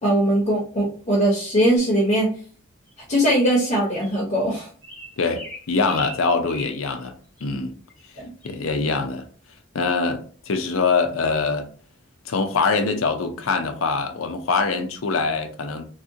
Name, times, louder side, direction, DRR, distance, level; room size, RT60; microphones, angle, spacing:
voice 1, 0.0-2.3 3.1-4.7 8.2-8.3, right 1 dB, 35° left, 0.8 m, -20 dB
sound 1, 1.8-2.0 2.9-3.0 3.5-3.7 4.0-4.2 4.8-7.1 7.4-7.5 7.9-8.1 8.4-8.6, left 1 dB, 5° left, 0.8 m, -40 dB
voice 2, 5.2-7.1 7.4-7.7 8.4-9.3 9.7-11.7 12.2-15.9, left 4 dB, 85° left, 0.5 m, -23 dB
3.5 x 2.4 x 2.7 m
head